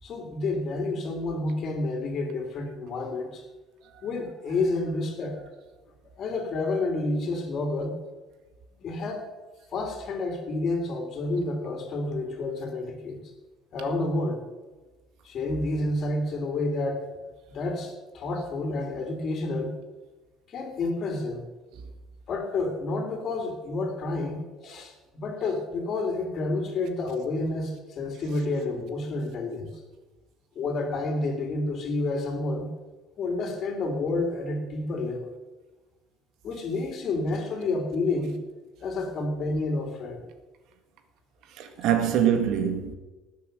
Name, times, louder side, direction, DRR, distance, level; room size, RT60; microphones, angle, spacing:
voice 1, 0.0-3.4 4.0-5.4 6.2-8.0 8.8-9.2 9.7-13.2 13.7-14.4 15.2-17.0 17.5-19.7 20.5-21.4 22.3-29.7 30.5-32.7 33.2-35.3 36.4-38.3 38.8-40.2, left 2 dB, 45° left, 3.2 m, -29 dB
voice 2, 41.6-42.9, right 9 dB, 65° right, 2.0 m, -24 dB
19.0 x 7.9 x 6.8 m
cardioid pair, 130°, 0 cm